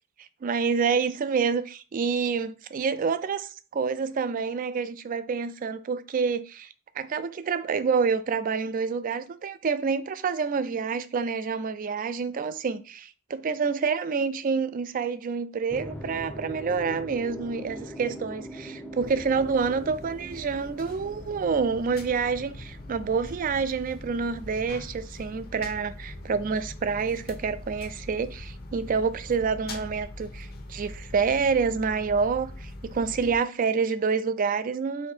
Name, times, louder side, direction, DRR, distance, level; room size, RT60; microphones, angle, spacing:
voice 1, 0.2-6.7 7.0-35.1, right 5 dB, 40° right, 0.3 m, -28 dB
sound 1, 15.7-25.9, equal, 10° left, 0.5 m, -43 dB
sound 2, 19.0-33.4, left 1 dB, 45° left, 0.7 m, -42 dB
4.2 x 2.6 x 4.2 m
head